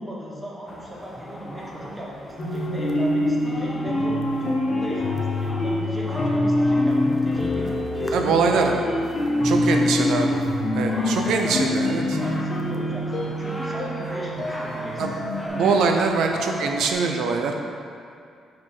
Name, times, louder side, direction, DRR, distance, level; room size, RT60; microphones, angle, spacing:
voice 1, 0.0-7.7 7.9-8.7 9.1-10.0 10.9-15.1, right 1 dB, 10° right, -4 dB, 1.1 m, -37 dB
sound 1, 0.7-16.9, left 1 dB, 5° left, 0.6 m, -38 dB
sound 2, 2.4-15.5, left 1 dB, 40° left, 1.4 m, -25 dB
voice 2, 8.1-8.8 9.4-10.3 10.7-12.2 15.0-15.1 15.5-17.5, right 4 dB, 75° right, 3 dB, 0.7 m, -23 dB
5.1 x 4.7 x 5.5 m, 2.5 s
cardioid pair, 140°, 0 cm